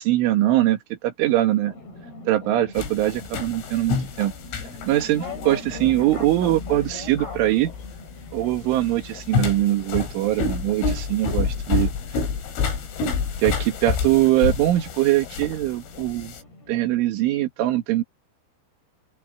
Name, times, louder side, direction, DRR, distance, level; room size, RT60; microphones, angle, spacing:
voice 1, 0.0-1.7 2.3-4.3 4.9-7.7 8.3-11.9 13.4-16.3 16.7-18.0, right 15 dB, 80° right, 4.3 m, -22 dB
sound 1, 1.6-17.1, left 3 dB, 55° left, 9.5 m, -42 dB
sound 2, 2.8-16.4, left 5 dB, 90° left, 6.8 m, -29 dB
open air
omnidirectional pair, 5.6 m